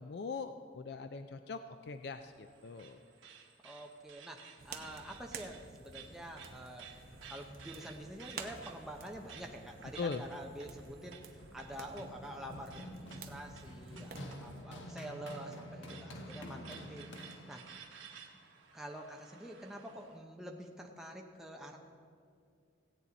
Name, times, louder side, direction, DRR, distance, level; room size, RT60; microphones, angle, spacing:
voice 1, 0.0-3.0 10.0-10.3, left 4 dB, 60° left, 9 dB, 0.4 m, -41 dB
sound 1, 2.0-20.2, right 7 dB, 90° right, 1.2 m, -56 dB
voice 2, 3.6-6.9 7.3-17.1 17.5-17.6 18.7-21.8, equal, ahead, 0 dB, 0.7 m, -47 dB
sound 2, 4.6-14.6, right 4 dB, 50° right, 0.8 m, -51 dB
Run, 11.4-17.8, equal, 80° left, 1.1 m, -48 dB
16.5 x 8.6 x 4.1 m, 2.4 s
head